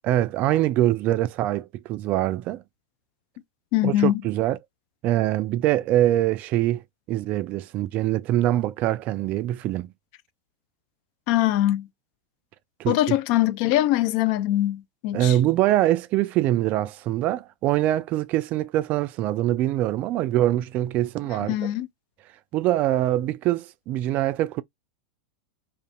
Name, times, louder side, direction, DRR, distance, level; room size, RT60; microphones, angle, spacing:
voice 1, 0.0-2.6 3.8-4.6 5.0-6.8 7.1-9.9 12.8-13.2 15.1-21.7 22.5-24.6, right 14 dB, 45° right, 0.3 m, -23 dB
voice 2, 3.7-4.2 11.3-11.9 12.9-15.4 21.4-21.9, left 14 dB, 55° left, 0.4 m, -22 dB
2.5 x 2.5 x 2.4 m
hypercardioid pair, 95°, 4 cm